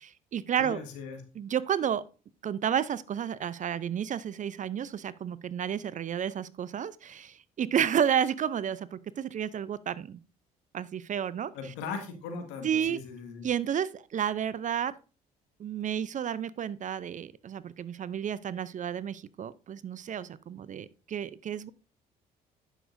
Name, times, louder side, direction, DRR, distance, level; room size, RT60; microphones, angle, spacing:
voice 1, 0.0-0.8 1.4-2.0 2.4-10.2 10.7-11.5 12.6-13.0 13.4-14.9 15.6-21.7, right 9 dB, 40° right, 0.5 m, -31 dB
voice 2, 0.6-1.2 11.5-13.4, left 5 dB, 75° left, 1.8 m, -39 dB
9.9 x 6.9 x 2.6 m
hypercardioid pair, 60°, 19 cm